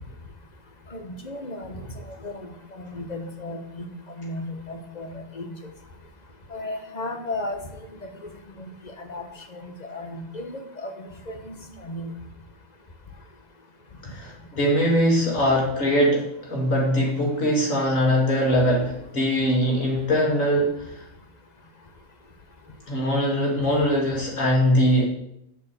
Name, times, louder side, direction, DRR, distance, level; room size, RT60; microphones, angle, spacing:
voice 1, 0.9-1.8 2.2-2.4 2.7-3.8 4.2-5.6 6.5-7.6 9.0-9.3 9.5-10.9 11.3-12.1, left 2 dB, 35° left, 5 dB, 1.2 m, -34 dB
voice 2, 14.0-20.9 22.9-25.1, equal, 90° left, -2 dB, 3.2 m, -22 dB
7.0 x 6.7 x 7.7 m, 0.78 s
omnidirectional pair, 1.3 m